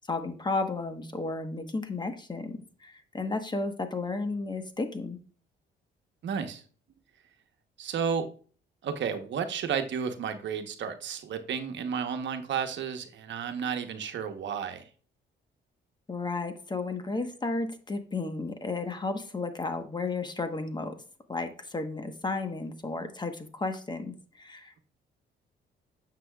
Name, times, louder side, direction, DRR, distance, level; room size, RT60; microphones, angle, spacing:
voice 1, 0.1-5.2 16.1-21.0 21.3-24.8, left 3 dB, 20° left, 7 dB, 1.2 m, -33 dB
voice 2, 6.2-6.6 7.8-8.3 8.8-14.8, right 7 dB, 65° right, 7 dB, 1.1 m, -32 dB
9.6 x 6.9 x 2.4 m, 0.41 s
cardioid pair, 90°, 20 cm